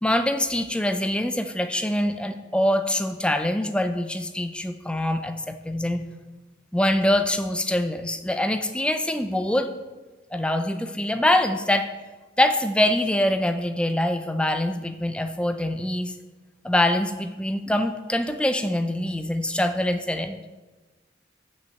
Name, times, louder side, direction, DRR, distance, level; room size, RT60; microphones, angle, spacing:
voice 1, 0.0-6.0 6.7-9.7 10.3-11.9 12.4-16.1 16.6-20.4, left 1 dB, 5° left, 8 dB, 0.4 m, -24 dB
6.3 x 5.6 x 7.1 m, 1.2 s
head